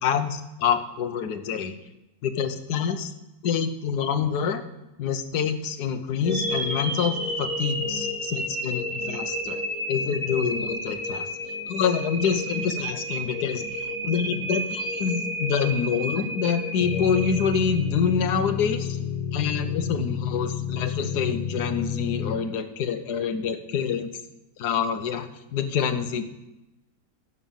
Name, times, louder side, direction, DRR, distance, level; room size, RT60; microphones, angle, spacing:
voice 1, 0.0-1.7 2.2-3.1 3.4-4.6 5.0-9.6 9.9-11.3 11.7-19.0 19.3-24.1 24.6-26.2, left 7 dB, 75° left, 9 dB, 1.4 m, -26 dB
sound 1, 6.2-18.4, equal, 50° right, 3.0 m, -31 dB
sound 2, 16.8-22.4, left 7 dB, 25° left, 0.7 m, -30 dB
11.0 x 5.6 x 7.1 m, 0.97 s
omnidirectional pair, 1.8 m